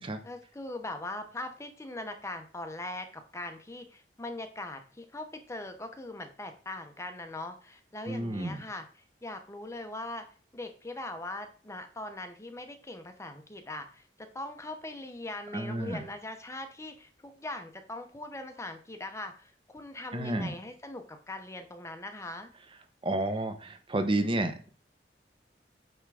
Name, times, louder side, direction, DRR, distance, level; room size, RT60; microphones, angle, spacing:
voice 1, 0.2-10.3 10.5-22.5, left 2 dB, 15° left, 6 dB, 0.8 m, -41 dB
voice 2, 8.1-8.6 15.5-16.0 20.1-20.5 23.0-24.7, right 1 dB, 30° right, 8 dB, 0.8 m, -31 dB
8.9 x 3.6 x 4.8 m, 0.40 s
head